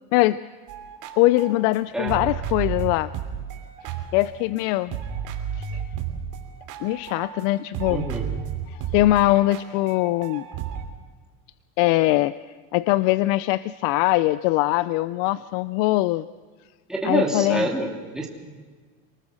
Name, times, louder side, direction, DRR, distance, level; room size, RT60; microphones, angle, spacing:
sound 1, 0.7-4.6 4.9-7.5 7.7-10.8, right 8 dB, 50° right, 3.2 m, -32 dB
voice 1, 1.2-3.1 4.1-5.0 5.6-5.8 6.8-8.1 8.7-10.4 11.8-12.3 12.7-16.3 17.0-17.7, left 17 dB, 65° left, 16 dB, 0.6 m, -22 dB
voice 2, 7.9-8.3 16.9-18.3, right 2 dB, ahead, -1 dB, 2.7 m, -26 dB
28.0 x 20.0 x 6.3 m, 1.5 s
supercardioid pair, 145°, 39 cm